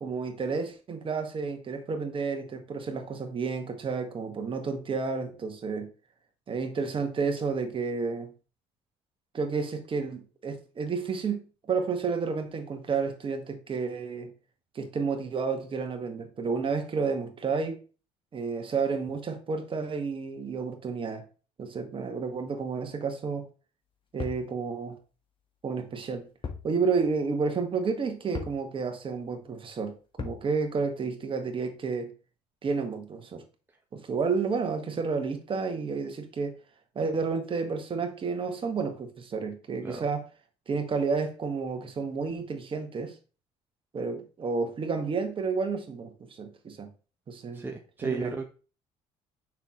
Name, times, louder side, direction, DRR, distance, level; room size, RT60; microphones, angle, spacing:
voice 1, 0.0-5.9 6.5-8.3 9.3-11.4 11.7-14.3 14.8-17.8 18.3-21.3 21.6-23.5 24.1-25.0 25.6-26.3 26.6-32.1 32.6-33.4 33.9-36.5 37.0-40.3 40.7-43.2 43.9-46.9 47.3-47.6 48.0-48.3, right 5 dB, 40° right, 1.8 m, -31 dB
sound 1, 24.2-24.5 26.4-26.7 27.0-27.1 28.3-28.6 30.2-30.5, left 5 dB, 35° left, 1.6 m, -37 dB
voice 2, 47.5-48.4, right 4 dB, 15° right, 1.2 m, -33 dB
6.6 x 6.1 x 3.2 m
supercardioid pair, 80°, 14 cm